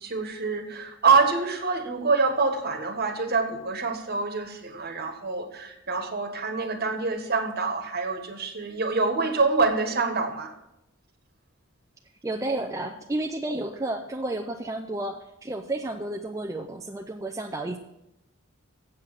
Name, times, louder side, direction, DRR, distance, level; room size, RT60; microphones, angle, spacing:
voice 1, 0.0-10.5, right 4 dB, 50° right, 6 dB, 1.4 m, -26 dB
voice 2, 12.2-17.8, right 2 dB, 15° right, 3 dB, 0.5 m, -31 dB
7.8 x 7.7 x 7.3 m, 0.85 s
head